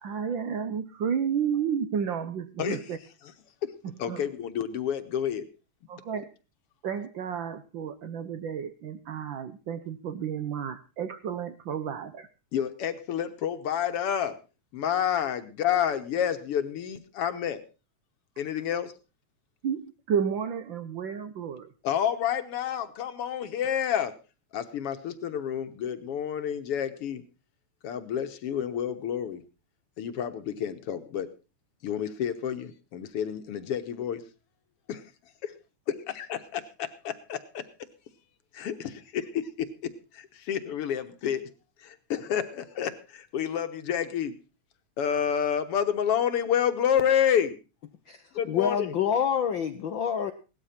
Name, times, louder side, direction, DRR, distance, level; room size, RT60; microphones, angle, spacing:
voice 1, 0.0-3.0 3.8-4.2 5.9-6.3 6.8-12.3 19.6-21.7, right 7 dB, 85° right, 11 dB, 1.0 m, -32 dB
voice 2, 4.0-5.5 12.5-14.4 14.7-17.6 18.4-18.9 21.8-24.1 24.5-27.2 27.8-29.4 30.0-31.3 31.8-34.2 34.9-35.0 36.1-37.6 38.5-41.5 41.8-44.3 45.0-47.6 48.4-48.9, left 9 dB, 60° left, 9 dB, 1.8 m, -29 dB
voice 3, 48.5-50.3, left 8 dB, 90° left, 8 dB, 1.0 m, -27 dB
17.5 x 13.0 x 4.3 m, 0.31 s
omnidirectional pair, 3.3 m